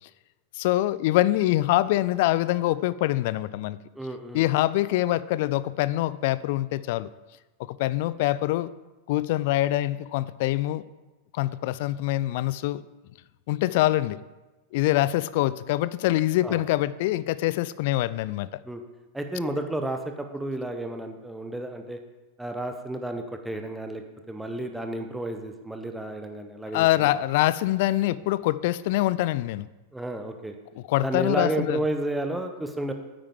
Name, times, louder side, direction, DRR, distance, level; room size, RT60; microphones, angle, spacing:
voice 1, 0.6-3.8 4.3-7.1 7.7-8.7 9.1-10.8 11.3-12.8 13.5-14.2 14.7-18.5 26.7-29.7 30.8-31.8, left 16 dB, 50° left, 17 dB, 0.3 m, -24 dB
voice 2, 3.9-4.4 16.4-16.6 18.7-18.8 19.1-22.0 22.4-24.0 24.3-27.1 29.9-30.5 31.0-32.9, right 1 dB, 5° right, 5 dB, 0.8 m, -31 dB
9.1 x 8.6 x 3.6 m, 1.1 s
figure-of-eight pair, 90°, 0 cm